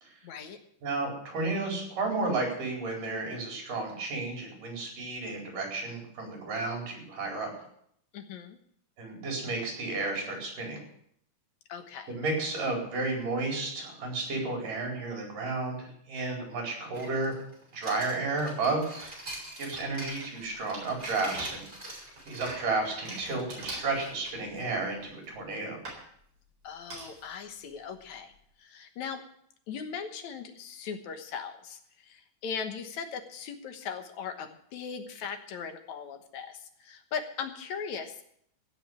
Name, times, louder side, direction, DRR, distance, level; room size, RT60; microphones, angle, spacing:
voice 1, 0.2-0.6 8.1-8.6 11.7-12.1 26.6-28.3 28.6-29.2 29.7-38.2, left 6 dB, 65° left, 7 dB, 2.3 m, -39 dB
voice 2, 0.8-7.5 9.0-10.8 12.1-17.3 17.7-19.2 19.6-21.7 22.3-25.8, right 3 dB, 70° right, 0 dB, 6.2 m, -32 dB
sound 1, 16.9-23.6, right 1 dB, 15° right, 4.3 m, -43 dB
sound 2, 19.0-19.4 19.7-24.8 25.2-25.4 25.9-26.0 26.9-27.3 27.7-27.8 28.0-28.1, right 2 dB, 40° right, 5.2 m, -43 dB
16.5 x 6.5 x 9.5 m, 0.69 s
omnidirectional pair, 4.0 m